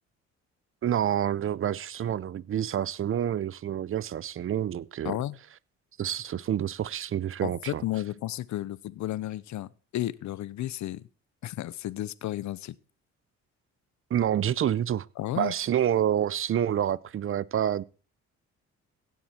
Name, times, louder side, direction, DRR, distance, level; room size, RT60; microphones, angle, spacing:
voice 1, 0.8-5.1 6.0-7.8 14.1-15.1 15.4-17.8, right 10 dB, 45° right, 0.6 m, -28 dB
voice 2, 5.0-5.4 7.4-11.1 11.4-12.7 15.2-15.5, left 14 dB, 70° left, 0.7 m, -33 dB
16.5 x 7.6 x 4.3 m
cardioid pair, 90°, 30 cm